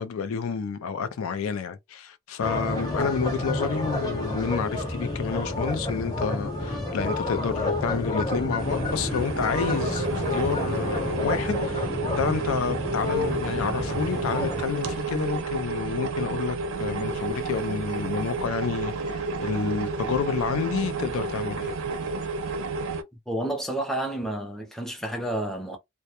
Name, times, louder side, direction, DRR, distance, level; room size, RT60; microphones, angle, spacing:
voice 1, 0.0-21.7, left 5 dB, 80° left, 0.4 m, -30 dB
sound 1, 2.4-14.6, left 2 dB, 20° left, 0.8 m, -29 dB
sound 2, 8.6-23.0, right 3 dB, 70° right, 0.5 m, -31 dB
voice 2, 23.3-25.8, right 1 dB, ahead, 0.5 m, -30 dB
2.1 x 2.1 x 2.8 m
head